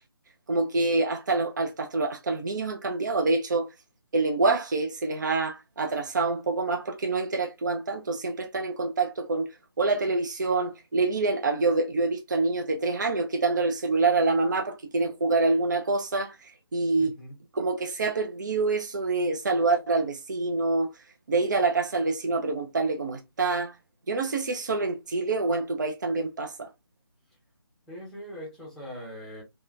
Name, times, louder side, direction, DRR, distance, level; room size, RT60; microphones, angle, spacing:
voice 1, 0.5-3.7 4.1-9.5 9.8-17.1 17.5-20.9 21.3-23.7 24.1-26.7, right 3 dB, 50° right, 0.5 m, -26 dB
voice 2, 17.0-17.4 27.9-29.4, equal, ahead, 0.6 m, -41 dB
3.5 x 2.2 x 2.4 m
figure-of-eight pair, 150°, 13 cm